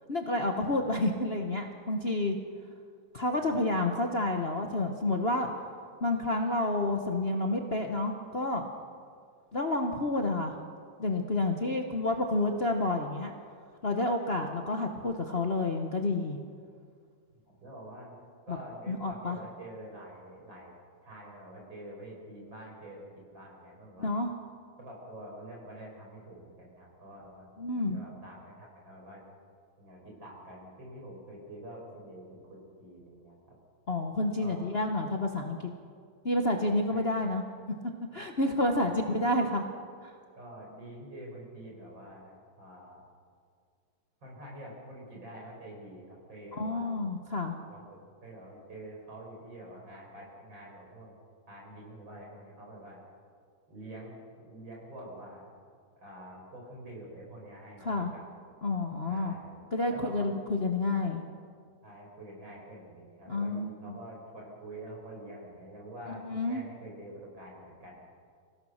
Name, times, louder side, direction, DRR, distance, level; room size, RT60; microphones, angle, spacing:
voice 1, 0.1-2.4 3.1-5.5 6.0-8.7 9.5-10.5 11.0-13.3 13.8-16.4 18.5-18.6 18.9-19.4 24.0-24.3 27.6-28.0 33.9-35.7 36.2-37.4 38.1-39.6 40.0-40.1 46.6-47.6 57.8-58.1 58.6-59.3 59.7-61.2 63.3-63.7 66.2-66.6, left 2 dB, 35° left, 2 dB, 1.1 m, -29 dB
voice 2, 17.6-20.7 21.0-24.1 24.8-29.2 29.8-33.6 34.4-34.7 36.9-37.1 38.8-39.0 40.4-43.0 44.2-47.0 47.7-51.2 51.5-53.0 53.7-55.5 56.0-58.2 59.1-60.3 61.8-67.9, right 1 dB, 60° right, -1 dB, 6.3 m, -47 dB
25.5 x 16.5 x 6.5 m, 2.1 s
omnidirectional pair, 2.3 m